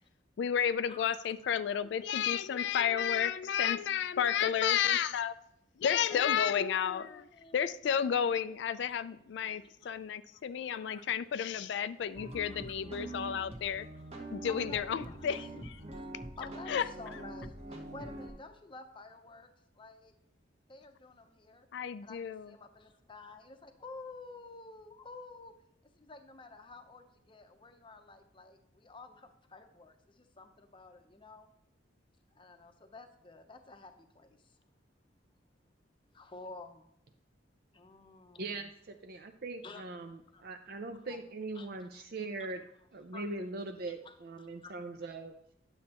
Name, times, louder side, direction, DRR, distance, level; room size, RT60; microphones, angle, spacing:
voice 1, 0.4-5.3 5.8-7.1 7.5-13.9 14.3-15.8 16.7-16.8 21.7-22.5, left 8 dB, 65° left, 14 dB, 0.3 m, -31 dB
voice 2, 0.9-1.8 6.1-7.5 8.7-8.9 9.8-9.9 10.3-10.4 10.7-11.1 11.8-11.9 12.5-13.4 13.9-14.0 14.4-15.3 15.9-16.1 16.4-17.6 17.9-19.5 19.7-20.1 20.7-21.7 22.0-25.5 26.0-31.5 32.3-34.6 36.1-36.9 37.7-38.7 39.6-39.8 40.3-40.5 41.0-41.2 41.5-41.7 41.9-42.0 42.4-42.6 43.1-43.3 44.0-44.7, left 3 dB, 25° left, 7 dB, 0.7 m, -50 dB
sound 1, 12.1-18.3, right 2 dB, 35° right, 1.2 m, -44 dB
voice 3, 38.4-42.6 42.9-45.4, right 2 dB, 55° right, 5 dB, 0.5 m, -41 dB
9.6 x 7.2 x 2.9 m, 0.74 s
head